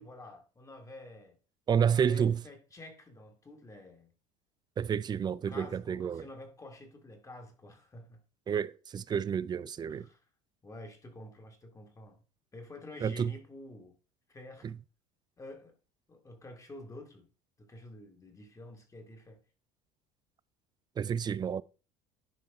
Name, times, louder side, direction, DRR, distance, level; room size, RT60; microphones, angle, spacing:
voice 1, 0.0-1.4 1.9-4.1 5.5-8.2 9.9-10.2 10.6-12.2 12.5-13.9 14.3-14.7 15.4-15.8 16.1-17.3 17.6-19.4, left 1 dB, 20° left, 1.5 m, -49 dB
voice 2, 1.7-2.4 4.8-6.3 8.5-10.1 13.0-13.3 14.6-14.8 21.0-21.6, right 7 dB, 25° right, 0.4 m, -30 dB
10.5 x 4.7 x 3.5 m
supercardioid pair, 100°, 17 cm